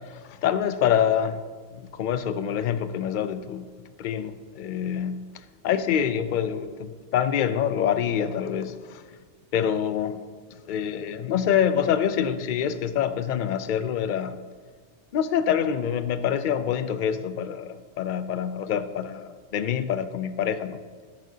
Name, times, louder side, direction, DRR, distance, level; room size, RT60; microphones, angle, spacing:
voice 1, 0.0-1.4 1.7-3.7 4.0-5.2 5.6-9.0 9.5-10.2 10.6-14.4 15.1-20.8, left 8 dB, 60° left, 11 dB, 0.5 m, -26 dB
12.5 x 8.4 x 2.8 m, 1.5 s
omnidirectional pair, 1.2 m